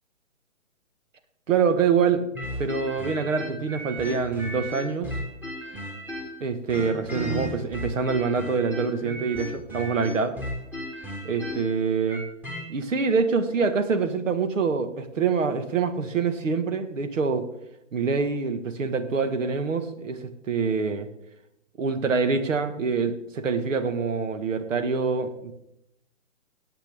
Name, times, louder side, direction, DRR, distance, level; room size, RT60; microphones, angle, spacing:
voice 1, 1.5-2.2 2.6-5.1 6.4-10.3 11.2-12.2 12.7-17.5 17.9-21.1 21.8-25.5, right 5 dB, 70° right, 10 dB, 1.7 m, -25 dB
sound 1, 2.3-6.4 6.7-12.7, equal, 5° right, 1.4 m, -35 dB
18.0 x 8.5 x 3.6 m, 0.81 s
hypercardioid pair, 150°, 40 cm